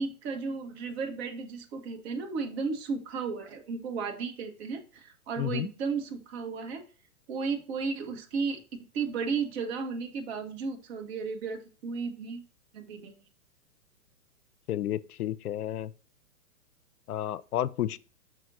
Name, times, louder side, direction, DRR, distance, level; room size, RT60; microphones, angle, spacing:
voice 1, 0.0-6.8 7.3-8.6 8.9-12.4 12.7-13.1, right 5 dB, 45° right, 1.6 m, -34 dB
voice 2, 5.4-5.7 14.7-15.9 17.1-18.0, left 12 dB, 80° left, 0.6 m, -31 dB
6.4 x 6.3 x 2.7 m
hypercardioid pair, 130°, 44 cm